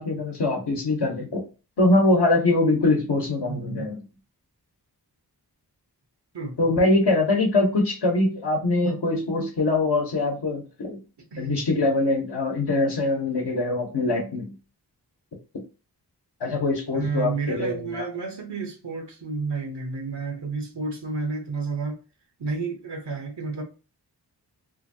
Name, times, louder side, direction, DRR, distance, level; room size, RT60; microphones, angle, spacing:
voice 1, 0.0-1.4 1.8-4.0 6.6-11.0 11.4-14.5 16.4-18.0, left 2 dB, 75° left, 0.9 m, -23 dB
voice 2, 3.5-3.9 6.3-6.7 8.8-9.0 11.3-11.6 16.9-22.0 22.4-23.6, right 4 dB, 85° right, 0.8 m, -31 dB
2.7 x 2.6 x 2.6 m
cardioid pair, 40°, 40 cm